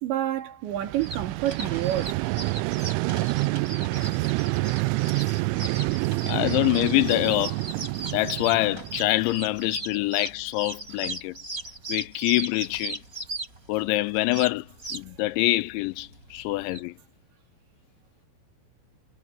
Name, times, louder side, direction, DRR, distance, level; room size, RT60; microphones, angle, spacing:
voice 1, 0.0-2.2, right 12 dB, 70° right, 4.5 m, -28 dB
Vehicle, 0.7-9.7, right 24 dB, 85° right, 3.0 m, -28 dB
sound 1, 0.8-16.8, right 2 dB, 15° right, 5.9 m, -38 dB
voice 2, 6.3-7.6 8.1-11.4 11.9-13.0 13.7-14.7 14.9-16.9, left 19 dB, 85° left, 2.8 m, -25 dB
omnidirectional pair, 5.5 m